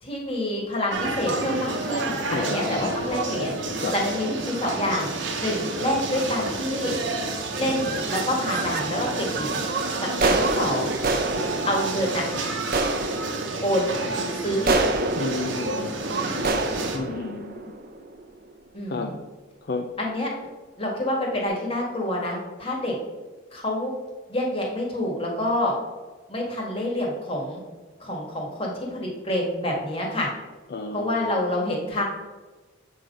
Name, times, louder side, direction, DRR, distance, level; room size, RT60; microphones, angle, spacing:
voice 1, 0.0-5.1 5.4-6.9 7.6-9.6 10.0-10.9 11.6-12.3 13.6-13.9 14.3-14.9 18.7-19.1 20.0-20.3 20.8-22.9 23.5-23.9 24.3-25.7 26.3-27.6 28.0-30.3 30.9-32.0, left 1 dB, 25° left, -1 dB, 1.5 m, -27 dB
sound 1, 0.9-17.0, right 2 dB, 65° right, 0.9 m, -30 dB
voice 2, 2.3-2.9 3.8-4.0 15.2-15.9 16.9-17.7 18.9-19.1 19.6-19.9 30.7-31.4, left 3 dB, 50° left, 3 dB, 0.5 m, -31 dB
sound 2, 2.8-3.2 3.7-4.0 4.7-4.9 5.2-5.3 5.6-6.0 6.6-6.9 7.2-8.9 9.3-18.5, right 3 dB, 45° right, 0.6 m, -29 dB
7.5 x 3.8 x 5.0 m, 1.3 s
head